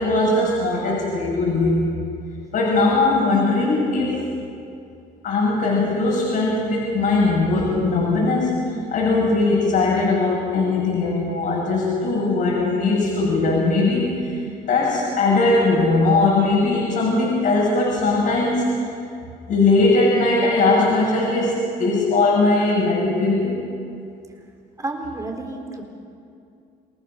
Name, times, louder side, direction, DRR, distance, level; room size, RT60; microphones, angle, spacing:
voice 1, 0.0-1.9 2.5-4.3 5.2-18.8 19.5-23.6, left 3 dB, 60° left, -6 dB, 6.7 m, -20 dB
voice 2, 24.8-25.8, right 2 dB, 20° right, 3 dB, 4.0 m, -30 dB
28.5 x 18.5 x 6.4 m, 2.5 s
cardioid pair, 110°, 17 cm